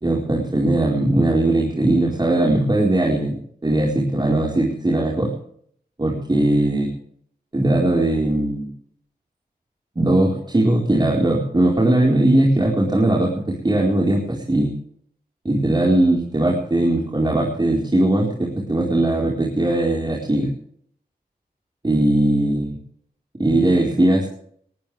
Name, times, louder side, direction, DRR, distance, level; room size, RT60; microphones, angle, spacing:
voice 1, 0.0-3.4 3.6-5.3 6.0-6.9 7.5-8.7 10.0-14.7 15.4-20.5 21.8-22.8 23.4-24.3, right 1 dB, 25° right, -3 dB, 4.5 m, -19 dB
20.5 x 17.5 x 3.5 m, 0.64 s
wide cardioid pair, 65°, 16 cm